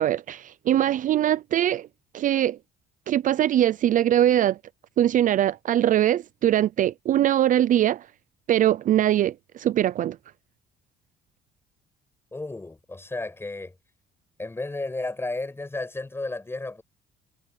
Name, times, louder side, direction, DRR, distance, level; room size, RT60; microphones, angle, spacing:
voice 1, 0.0-1.9 2.1-2.6 3.1-4.6 5.0-8.1 8.5-10.2, right 12 dB, 50° right, 0.5 m, -22 dB
voice 2, 12.3-13.8 14.4-16.8, left 2 dB, 15° left, 7.4 m, -33 dB
cardioid pair, 110°, 17 cm